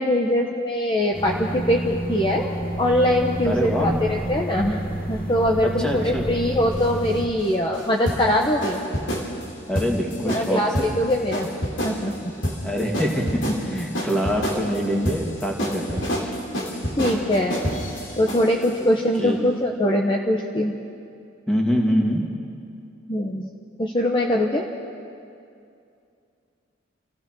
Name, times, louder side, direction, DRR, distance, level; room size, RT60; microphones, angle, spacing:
voice 1, 0.0-2.5 2.8-4.8 5.1-8.8 10.3-11.5 11.8-12.3 17.0-17.6 18.2-20.8 23.1-23.5 23.8-24.7, left 1 dB, 25° left, 0 dB, 1.1 m, -22 dB
sound 1, 1.1-7.3, right 1 dB, 50° left, 2.5 m, -30 dB
voice 2, 3.4-4.0 5.6-6.3 9.7-10.9 12.6-16.3 18.7-18.9 19.2-19.4 21.5-22.3, equal, 5° left, -1 dB, 2.5 m, -25 dB
sound 2, 6.7-18.7, equal, 85° left, 3.3 m, -29 dB
27.5 x 15.5 x 6.3 m, 2.5 s
head